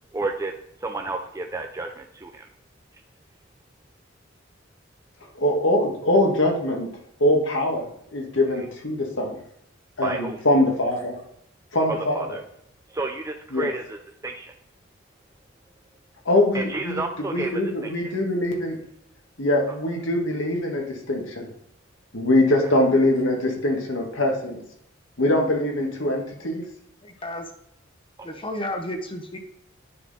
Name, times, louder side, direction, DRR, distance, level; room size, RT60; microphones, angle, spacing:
voice 1, 0.1-0.6 0.8-2.4 10.0-10.4 11.9-12.4 12.9-14.5 16.5-17.9 22.6-22.7 28.2-28.3, right 3 dB, 15° right, 3 dB, 0.4 m, -31 dB
voice 2, 5.4-6.9 7.2-9.4 10.0-11.2 11.7-12.4 13.5-13.7 16.3-18.8 19.4-21.5 22.1-24.6 25.2-26.6, left 1 dB, 75° left, 1 dB, 1.7 m, -23 dB
voice 3, 27.0-27.5 28.2-29.4, left 1 dB, 25° left, 5 dB, 0.9 m, -32 dB
9.6 x 4.2 x 4.1 m, 0.73 s
head